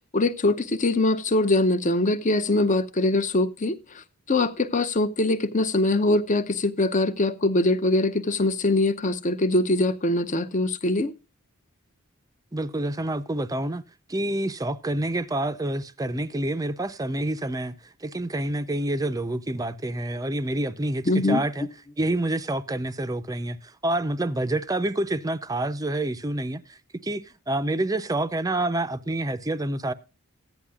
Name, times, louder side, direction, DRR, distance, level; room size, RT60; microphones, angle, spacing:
voice 1, 0.1-3.8 4.3-11.1 21.1-21.4, left 2 dB, 35° left, 0.8 m, -23 dB
voice 2, 12.5-13.8 14.1-21.7 22.0-29.9, right 1 dB, 15° right, 0.5 m, -28 dB
15.0 x 10.0 x 2.4 m
head